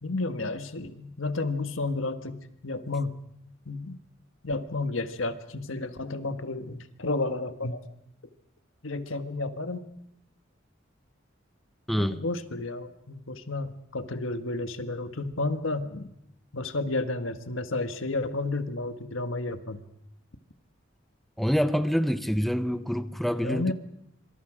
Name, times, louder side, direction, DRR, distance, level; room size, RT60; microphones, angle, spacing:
voice 1, 0.0-3.2 3.6-4.0 4.4-7.8 8.8-9.9 12.0-16.1 16.5-19.8 23.4-23.7, left 2 dB, 80° left, 1.5 m, -31 dB
voice 2, 11.9-12.2 21.4-23.7, equal, ahead, 0.8 m, -26 dB
26.0 x 24.5 x 5.0 m
head